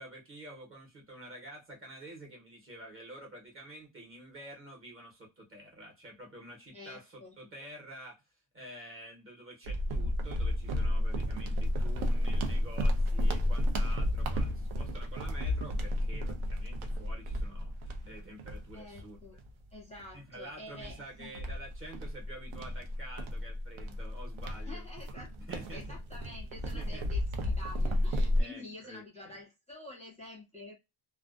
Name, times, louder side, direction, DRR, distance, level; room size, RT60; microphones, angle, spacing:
voice 1, 0.0-8.2 8.5-19.2 20.1-24.9 25.4-26.0 26.7-27.1 27.9-28.1 28.4-29.4, right 1 dB, 25° right, 1.0 m, -48 dB
voice 2, 6.7-7.3 18.7-19.4 19.7-21.3 24.5-25.3 25.7-30.8, left 2 dB, 15° left, 0.6 m, -48 dB
sound 1, 9.6-19.5 20.0-20.2 20.7-28.4, left 1 dB, 75° right, 0.7 m, -32 dB
2.4 x 2.2 x 2.3 m
cardioid pair, 170°, 49 cm